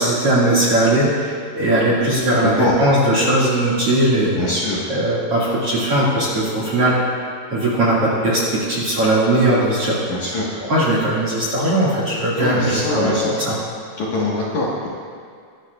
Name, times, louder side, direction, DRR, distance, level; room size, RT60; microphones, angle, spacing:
voice 1, 0.0-4.3 4.9-6.9 7.5-8.4 8.7-10.0 10.6-13.6, right 1 dB, 45° right, -7 dB, 2.3 m, -18 dB
voice 2, 4.4-4.8 10.1-10.5 12.4-13.3 14.0-14.9, left 2 dB, 55° left, -6 dB, 2.3 m, -23 dB
24.0 x 11.5 x 2.4 m, 2.2 s
omnidirectional pair, 5.0 m